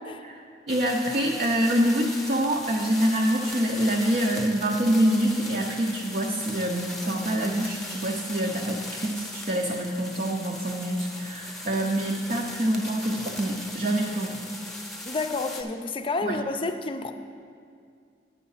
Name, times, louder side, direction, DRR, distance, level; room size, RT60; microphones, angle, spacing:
sound 1, 0.7-15.6, left 1 dB, ahead, 0.8 m, -39 dB
voice 1, 0.7-14.4 16.2-16.4, right 1 dB, 50° right, 0 dB, 0.7 m, -26 dB
voice 2, 15.1-17.1, left 3 dB, 30° left, 8 dB, 0.5 m, -30 dB
9.4 x 6.9 x 5.6 m, 2.3 s
head